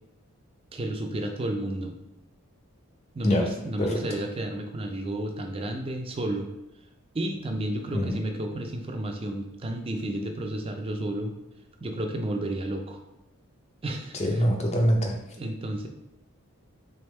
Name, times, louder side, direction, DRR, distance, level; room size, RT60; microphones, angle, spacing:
voice 1, 0.7-2.0 3.1-6.5 7.1-11.3 11.8-13.0 13.8-14.5 15.4-15.9, right 1 dB, 25° right, 4 dB, 0.3 m, -32 dB
voice 2, 14.2-15.2, equal, 30° left, 1 dB, 0.5 m, -24 dB
3.5 x 3.4 x 3.1 m, 0.91 s
head